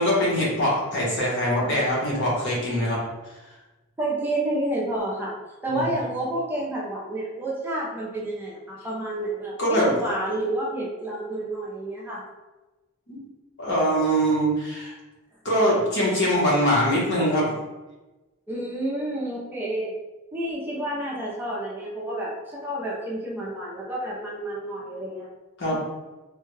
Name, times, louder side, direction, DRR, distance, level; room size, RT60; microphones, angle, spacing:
voice 1, 0.0-3.0 5.7-5.8 9.6-9.9 13.1-13.2 13.6-14.9 15.4-17.5 25.6-25.8, equal, 60° left, -5 dB, 1.2 m, -23 dB
voice 2, 4.0-5.3 5.6-12.2 18.5-19.9 20.3-25.3 25.7-25.8, right 1 dB, 10° right, -5 dB, 0.6 m, -29 dB
3.4 x 2.3 x 3.2 m, 1.1 s
head